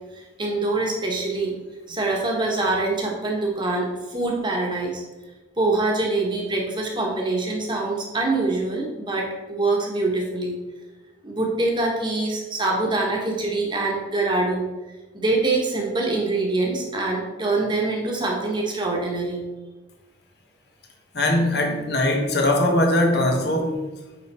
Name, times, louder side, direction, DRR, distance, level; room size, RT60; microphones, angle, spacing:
voice 1, 0.1-1.5 1.9-5.0 5.6-10.6 11.2-14.7 15.1-19.4, right 2 dB, 25° right, 1.3 m, -24 dB
voice 2, 21.1-23.8, left 1 dB, 60° left, 1.1 m, -21 dB
9.0 x 3.7 x 4.3 m
head